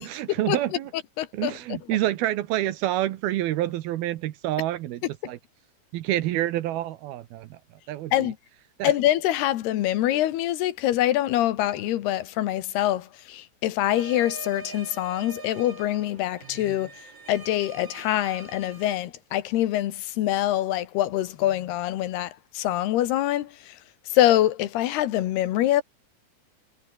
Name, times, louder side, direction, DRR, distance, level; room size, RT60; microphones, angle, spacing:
voice 1, 0.0-0.9 1.3-5.4 5.9-7.6 7.9-8.1 8.8-8.9 16.7-16.8, right 14 dB, 75° right, 2.7 m, -28 dB
voice 2, 0.9-2.0 8.1-8.4 8.8-16.9 17.3-23.8 24.1-25.8, left 13 dB, 75° left, 3.2 m, -25 dB
sound 1, 13.9-18.9, right 4 dB, 30° right, 3.7 m, -43 dB
omnidirectional pair, 4.8 m